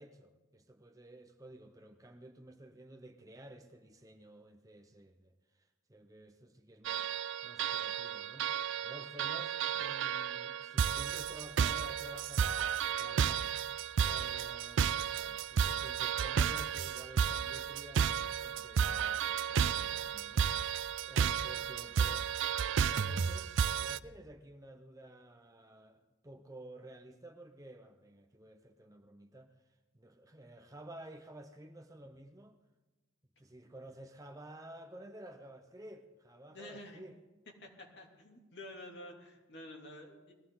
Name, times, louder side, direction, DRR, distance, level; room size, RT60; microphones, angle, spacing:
voice 1, 0.0-13.5 14.0-20.7 21.0-22.3 22.8-29.5 29.9-32.6 33.4-37.2, right 1 dB, 15° right, 5 dB, 0.8 m, -52 dB
sound 1, 6.8-24.0, right 7 dB, 65° right, 0.4 m, -32 dB
voice 2, 36.5-37.0 37.6-40.3, left 1 dB, 60° left, 0 dB, 2.7 m, -50 dB
21.0 x 15.0 x 3.8 m, 1.1 s
head